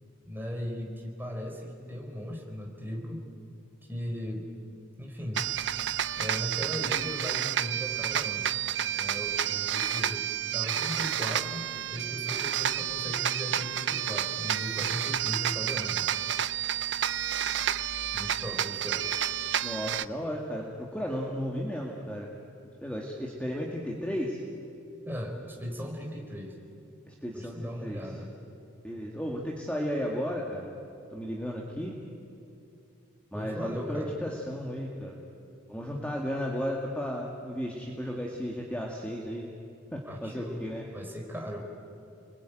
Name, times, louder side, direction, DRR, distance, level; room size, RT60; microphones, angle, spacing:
voice 1, 0.3-3.2 3.9-4.4 5.0-5.4 6.2-8.5 8.9-10.3 10.5-16.1 18.1-19.1 25.0-26.6 27.3-28.3 33.3-34.1 40.1-40.7 40.9-41.6, equal, 10° right, 1 dB, 3.9 m, -37 dB
sound 1, 5.3-20.0, right 10 dB, 60° right, 0.6 m, -30 dB
voice 2, 19.6-22.3 22.8-24.4 27.1-28.1 28.8-30.7 31.1-31.9 33.3-35.1 35.7-39.5 39.9-40.9, equal, 5° left, -1 dB, 2.1 m, -34 dB
29.5 x 21.5 x 9.1 m, 2.7 s
head